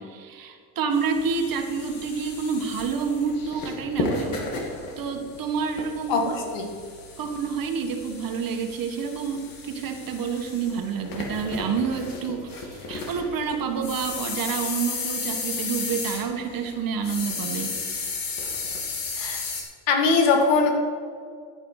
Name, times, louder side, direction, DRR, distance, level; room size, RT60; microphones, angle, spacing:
voice 1, 0.0-4.4 5.0-6.3 7.2-17.7, right 6 dB, 50° right, 5 dB, 1.6 m, -28 dB
sound 1, 0.9-19.6, left 4 dB, 50° left, 2.3 m, -34 dB
voice 2, 6.1-6.7 19.2-19.4 19.9-20.7, left 4 dB, 80° left, 3 dB, 2.2 m, -21 dB
10.5 x 9.4 x 4.9 m, 2.1 s
cardioid pair, 110°, 43 cm